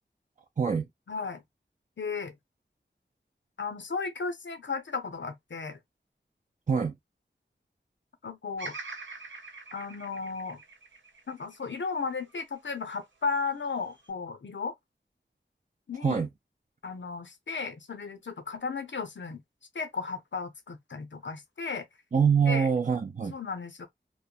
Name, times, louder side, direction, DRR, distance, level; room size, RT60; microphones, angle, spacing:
voice 1, 0.6-0.9 6.7-6.9 16.0-16.3 22.1-23.3, right 6 dB, 45° right, 0.4 m, -24 dB
voice 2, 1.1-1.4 2.0-2.4 3.6-5.8 8.2-8.8 9.7-10.6 11.3-14.7 15.9-16.2 16.8-19.4 19.7-21.9 22.5-22.7 23.3-23.9, left 4 dB, 80° left, 0.7 m, -35 dB
Bird vocalization bird call bird song, 8.6-12.8 13.3-14.1, right 3 dB, 80° right, 0.7 m, -45 dB
3.0 x 2.1 x 2.5 m
wide cardioid pair, 55°, 19 cm